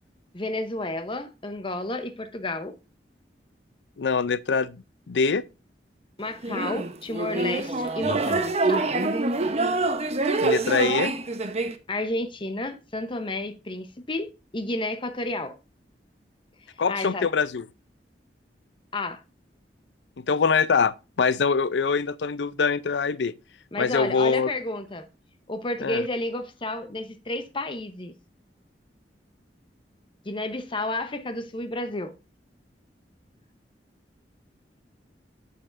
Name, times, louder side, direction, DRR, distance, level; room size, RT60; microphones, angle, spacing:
voice 1, 0.3-2.8 6.2-8.8 11.9-14.3 14.5-15.6 16.9-17.3 18.9-19.2 23.7-25.1 25.5-28.1 30.2-32.1, left 2 dB, 30° left, 0.9 m, -31 dB
voice 2, 4.0-4.8 5.1-5.4 10.4-11.1 16.8-17.6 20.3-23.3 23.8-24.5 25.8-26.0, left 5 dB, 85° left, 0.5 m, -23 dB
sound 1, 6.4-11.7, right 3 dB, 40° right, 0.9 m, -25 dB
8.8 x 6.9 x 2.6 m
head